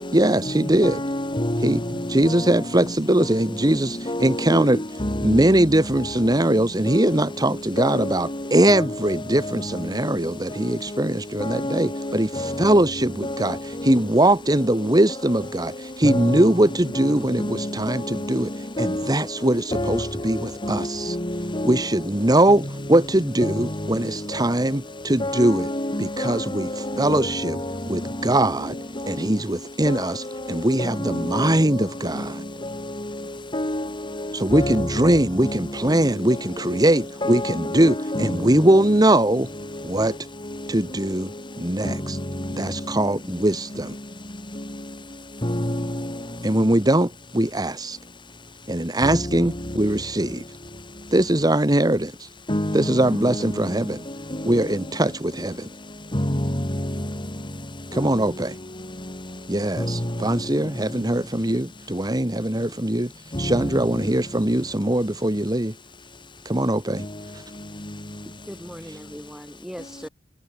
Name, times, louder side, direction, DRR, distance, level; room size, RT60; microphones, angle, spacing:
voice 1, 0.1-1.0 1.6-1.8 2.1-4.8 5.2-18.5 18.8-21.2 21.6-25.7 26.0-27.6 27.9-28.7 29.1-32.4 34.3-39.5 39.8-40.2 40.7-41.3 41.6-42.2 42.5-43.9 46.4-48.0 48.7-50.4 51.1-52.3 52.7-54.0 54.5-55.7 57.9-58.6 59.5-63.1 63.4-65.7 66.4-67.0 67.3-67.4, right 1 dB, 20° right, 1.6 m, -21 dB
voice 2, 0.8-2.3 4.1-5.5 7.8-8.1 8.7-8.9 11.4-12.7 13.2-13.5 16.0-16.5 17.4-17.7 18.8-19.1 19.7-20.0 20.6-21.8 23.4-23.7 25.2-26.3 26.9-27.7 30.8-31.5 33.5-33.9 34.5-35.1 35.4-35.6 37.2-38.4 41.8-42.0 45.4-46.0 49.1-49.2 52.5-53.2 56.1-56.6 59.8-59.9 63.5-63.6, left 1 dB, 25° left, 3.4 m, -27 dB
voice 3, 68.3-70.1, equal, 5° right, 2.7 m, -39 dB
head